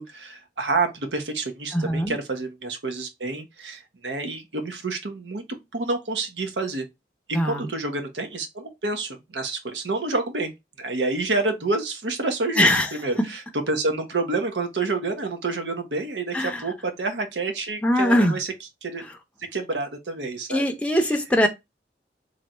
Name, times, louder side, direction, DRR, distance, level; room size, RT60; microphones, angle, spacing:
voice 1, 0.0-6.9 7.3-10.5 10.8-13.4 13.7-18.5 18.8-19.0 19.5-20.6 21.0-21.1, right 3 dB, 85° right, 1.0 m, -28 dB
voice 2, 1.7-2.2 7.3-7.7 12.6-12.9 16.3-16.6 17.8-18.4 20.5-21.5, equal, 10° left, 0.6 m, -21 dB
3.3 x 2.6 x 4.2 m
head